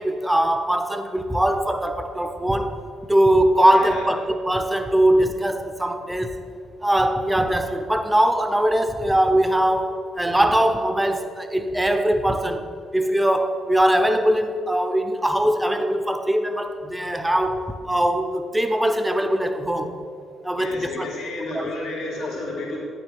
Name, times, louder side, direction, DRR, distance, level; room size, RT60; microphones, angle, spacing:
voice 1, 0.0-2.8 3.1-6.3 6.8-12.7 12.9-20.0 20.4-21.1 21.5-21.7 22.2-22.3, right 1 dB, 10° right, 7 dB, 0.8 m, -21 dB
voice 2, 3.7-4.0 20.6-22.8, left 2 dB, 75° left, -6 dB, 2.3 m, -31 dB
9.5 x 7.2 x 3.5 m, 2.3 s
hypercardioid pair, 45°, 0 cm